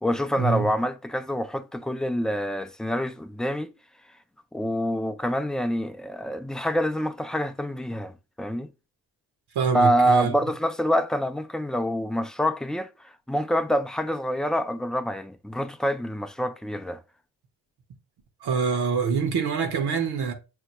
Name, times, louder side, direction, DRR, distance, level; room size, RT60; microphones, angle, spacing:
voice 1, 0.0-3.7 4.5-8.7 9.7-17.0, equal, ahead, 0.3 m, -26 dB
voice 2, 9.5-10.3 18.4-20.3, right 5 dB, 75° right, 1.1 m, -25 dB
6.3 x 2.2 x 3.0 m
cardioid pair, 60°, 39 cm